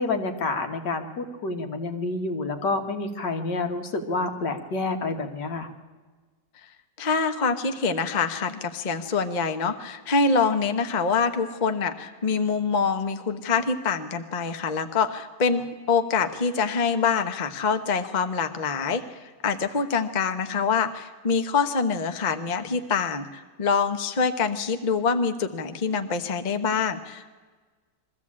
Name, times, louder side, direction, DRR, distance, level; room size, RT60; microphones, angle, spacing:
voice 1, 0.0-5.7, left 3 dB, 70° left, 5 dB, 2.2 m, -28 dB
voice 2, 7.0-15.6 15.9-19.0 19.4-27.3, left 5 dB, 30° left, 8 dB, 0.9 m, -25 dB
22.5 x 14.5 x 8.6 m, 1.4 s
omnidirectional pair, 1.9 m